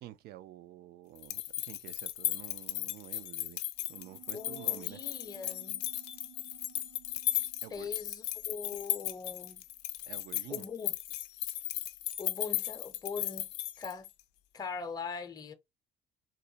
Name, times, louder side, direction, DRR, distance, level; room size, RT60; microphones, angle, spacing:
voice 1, 0.0-3.6 3.9-5.0 7.6-7.9 10.1-10.6, right 14 dB, 70° right, 0.4 m, -49 dB
sound 1, 1.2-14.2, left 14 dB, 85° left, 0.4 m, -36 dB
sound 2, 3.8-9.7, right 12 dB, 90° right, 1.0 m, -59 dB
voice 2, 4.3-5.9 7.7-9.6 10.5-10.9 12.2-13.5 13.8-14.1 14.5-15.5, left 5 dB, 25° left, 0.6 m, -41 dB
3.8 x 2.1 x 2.7 m
cardioid pair, 110°, 17 cm